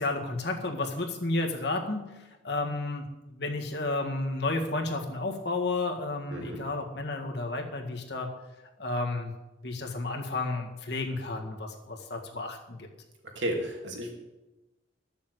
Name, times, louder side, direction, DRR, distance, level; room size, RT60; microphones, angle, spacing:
voice 1, 0.0-2.0 2.4-3.0 3.3-8.3 8.8-9.3 9.6-12.9, left 2 dB, 60° left, 2 dB, 1.8 m, -32 dB
voice 2, 6.3-6.6 13.2-14.1, right 1 dB, 75° right, 0 dB, 2.9 m, -33 dB
12.5 x 7.0 x 8.0 m, 1.1 s
head